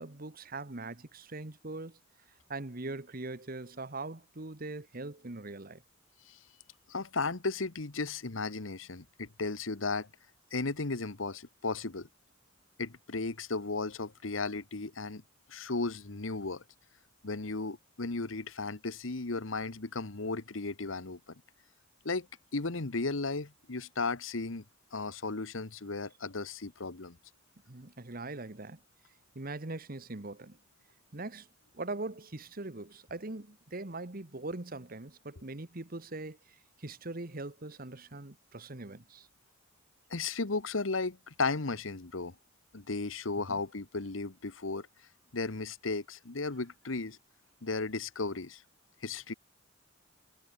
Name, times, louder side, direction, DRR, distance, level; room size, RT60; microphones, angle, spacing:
voice 1, 0.0-2.0 2.5-5.8 27.7-28.8 29.3-30.6 31.1-31.5 31.7-36.4 36.8-39.3 43.5-43.6, right 2 dB, 45° right, 1.5 m, -41 dB
voice 2, 6.9-10.1 10.5-12.1 12.8-15.2 15.5-16.6 17.2-21.2 22.0-22.3 22.5-24.6 24.9-27.2 40.1-42.3 42.7-44.9 45.3-47.2 47.6-48.6 49.0-49.3, left 3 dB, 90° left, 1.4 m, -35 dB
head